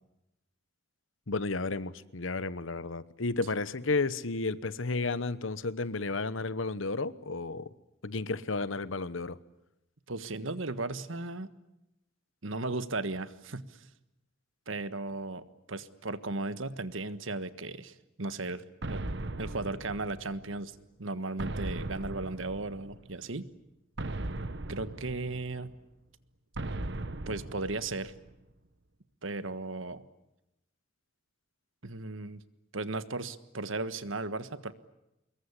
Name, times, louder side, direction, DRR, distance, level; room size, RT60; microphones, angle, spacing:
voice 1, 1.3-7.7 8.0-9.4, left 3 dB, 75° left, 1.1 m, -32 dB
voice 2, 10.1-11.5 12.4-13.8 14.7-19.0 19.4-23.5 24.7-25.7 27.3-28.1 29.2-30.0 31.8-32.4 32.7-34.7, right 2 dB, 75° right, 1.5 m, -36 dB
sound 1, 18.8-20.6 21.4-23.1 24.0-25.8 26.6-28.3, right 2 dB, 60° right, 1.3 m, -38 dB
25.5 x 22.0 x 9.9 m
head